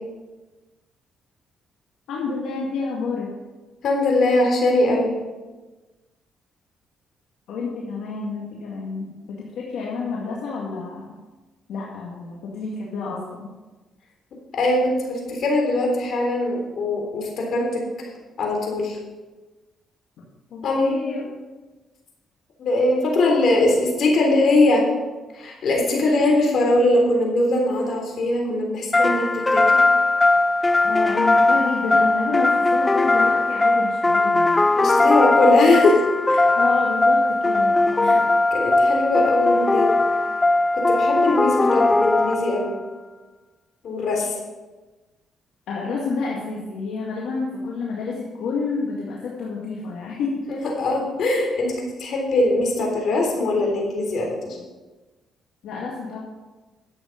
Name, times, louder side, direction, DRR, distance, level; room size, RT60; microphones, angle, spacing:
voice 1, 2.1-3.3 7.5-11.2 11.7-13.5 20.5-21.3 30.8-34.7 36.6-38.2 45.7-50.4 55.6-56.2, left 4 dB, 80° left, -4 dB, 2.0 m, -29 dB
voice 2, 3.8-5.1 14.5-17.8 18.4-19.0 20.6-20.9 22.6-24.9 25.3-29.8 34.8-36.0 36.3-36.5 38.0-38.2 38.5-39.9 40.7-42.8 43.8-44.4 50.5-54.6, left 2 dB, 65° left, 0 dB, 3.6 m, -21 dB
sound 1, 28.9-42.8, left 2 dB, 20° left, 0.5 m, -19 dB
11.5 x 8.2 x 5.2 m, 1.2 s
cardioid pair, 90°, 0 cm